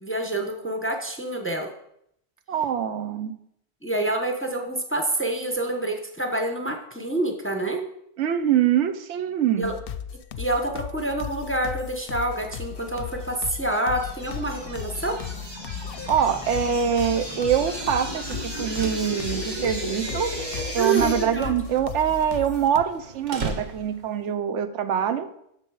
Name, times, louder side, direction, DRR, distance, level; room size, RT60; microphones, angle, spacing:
voice 1, 0.0-1.7 3.8-7.8 9.6-9.7 10.4-15.2 20.8-21.5, right 2 dB, 15° left, 4 dB, 0.7 m, -27 dB
voice 2, 2.5-3.4 8.2-9.7 16.1-20.3 20.7-25.3, right 8 dB, 85° right, 9 dB, 1.0 m, -24 dB
sound 1, 9.6-22.8, left 8 dB, 65° left, 0.7 m, -36 dB
sound 2, 13.2-21.2, right 1 dB, 20° right, 1.3 m, -35 dB
sound 3, 18.5-24.2, right 3 dB, 45° right, 0.9 m, -39 dB
7.8 x 6.1 x 4.7 m, 0.74 s
omnidirectional pair, 1.2 m